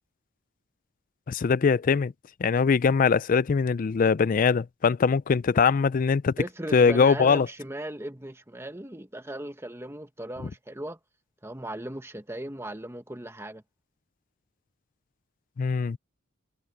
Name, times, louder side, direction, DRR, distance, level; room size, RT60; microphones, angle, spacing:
voice 1, 1.3-2.1 2.4-6.3 6.7-7.5 15.6-16.0, left 5 dB, 40° left, 0.3 m, -22 dB
voice 2, 6.4-11.0 11.4-13.6, right 1 dB, 15° right, 1.2 m, -37 dB
head